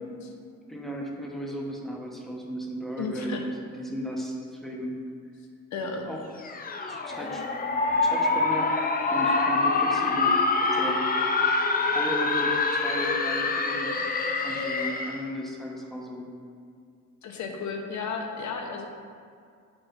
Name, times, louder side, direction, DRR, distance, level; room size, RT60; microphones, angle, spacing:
voice 1, 0.7-5.0 6.1-6.3 6.9-7.4 7.9-8.7 9.1-10.4 10.7-11.0 11.6-13.9 14.4-16.3, equal, ahead, -2 dB, 1.0 m, -35 dB
voice 2, 3.0-3.4 5.7-6.1 17.2-18.8, left 4 dB, 70° left, 3 dB, 0.9 m, -33 dB
sound 1, 6.4-15.2, left 3 dB, 30° left, 0.6 m, -25 dB
8.2 x 4.9 x 2.5 m, 2.3 s
cardioid pair, 90°, 30 cm